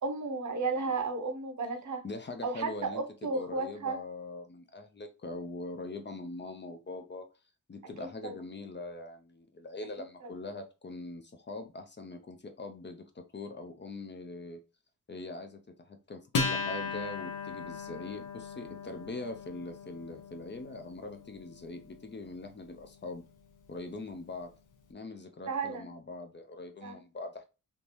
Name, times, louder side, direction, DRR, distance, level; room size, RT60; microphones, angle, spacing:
voice 1, 0.0-2.0 2.4-4.0 8.0-8.4 10.2-10.3 25.5-25.9 26.8-27.0, right 3 dB, 60° right, 0.8 m, -33 dB
voice 2, 2.0-7.3 7.7-14.6 15.1-23.2 23.7-24.5 24.9-27.5, left 2 dB, 35° left, 0.5 m, -42 dB
Acoustic guitar, 16.3-23.2, left 4 dB, 65° left, 0.8 m, -38 dB
3.5 x 2.6 x 2.9 m
wide cardioid pair, 140°, 33 cm